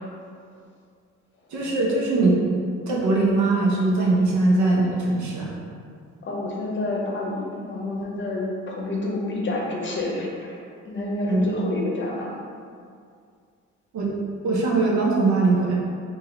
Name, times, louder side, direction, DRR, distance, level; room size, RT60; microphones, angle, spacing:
voice 1, 1.5-2.4 2.9-5.5 11.3-11.5 13.9-14.1 14.4-15.7, right 2 dB, 70° right, -3 dB, 0.9 m, -21 dB
voice 2, 6.3-10.3 10.9-12.3, left 2 dB, 40° left, -3 dB, 0.8 m, -28 dB
2.9 x 2.9 x 3.9 m, 2.2 s
cardioid pair, 90°, 30 cm